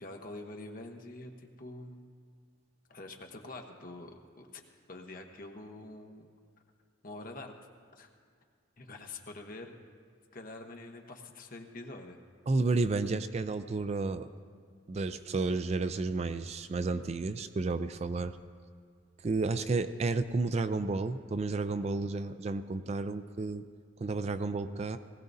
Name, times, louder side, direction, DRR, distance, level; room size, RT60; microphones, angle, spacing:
voice 1, 0.0-2.0 2.9-4.6 4.9-6.3 7.0-7.5 8.0-8.1 8.8-9.7 10.3-12.2, left 2 dB, 45° left, 3 dB, 1.1 m, -45 dB
voice 2, 12.5-14.3 14.9-18.4 19.2-23.6 24.0-25.0, right 3 dB, 35° right, 11 dB, 0.3 m, -31 dB
19.5 x 16.0 x 2.7 m, 2.1 s
head